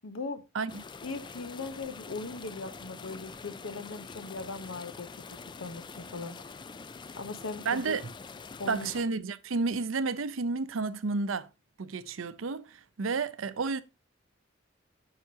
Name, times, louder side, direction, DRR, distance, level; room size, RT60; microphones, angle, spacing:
voice 1, 0.0-0.4 1.0-6.6 7.2-8.0 8.6-8.9, left 3 dB, 90° left, 1.0 m, -39 dB
sound 1, 0.7-9.0, left 4 dB, 25° left, 0.4 m, -45 dB
voice 2, 7.7-8.1 8.7-11.5 11.8-13.8, right 4 dB, 85° right, 0.6 m, -31 dB
9.7 x 5.9 x 2.8 m
head